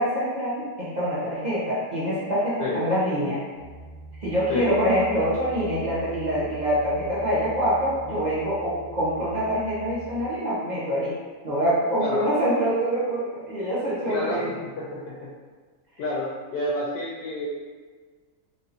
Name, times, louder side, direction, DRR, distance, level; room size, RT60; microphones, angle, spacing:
voice 1, 0.0-3.4 4.2-11.2 11.4-14.5, equal, 60° right, -9 dB, 0.4 m, -25 dB
sound 1, 3.5-10.2, right 3 dB, 50° left, 1.1 m, -42 dB
voice 2, 14.1-15.3 16.0-17.5, left 1 dB, 85° left, -6 dB, 1.2 m, -29 dB
3.5 x 2.8 x 2.4 m, 1.5 s
omnidirectional pair, 1.8 m